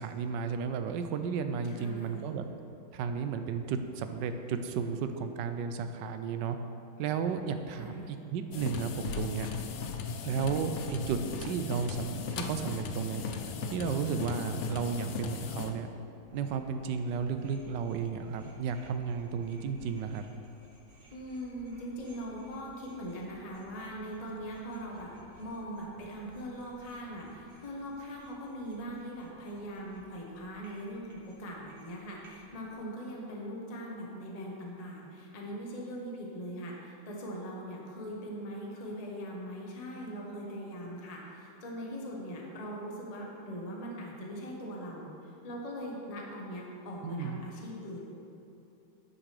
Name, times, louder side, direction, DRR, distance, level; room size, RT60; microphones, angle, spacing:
voice 1, 0.0-2.4 2.9-6.6 7.0-9.5 10.2-13.2 13.7-15.9 16.3-20.2 47.0-47.4, right 6 dB, 85° right, 8 dB, 1.3 m, -33 dB
voice 2, 1.6-2.4 7.7-8.3 21.1-25.1 25.4-48.0, equal, 25° left, -2 dB, 1.0 m, -41 dB
sound 1, 8.5-15.7, left 5 dB, 80° left, 0.6 m, -37 dB
sound 2, 16.2-32.7, equal, 35° right, 1.4 m, -59 dB
10.0 x 9.7 x 3.3 m, 2.8 s
omnidirectional pair, 1.9 m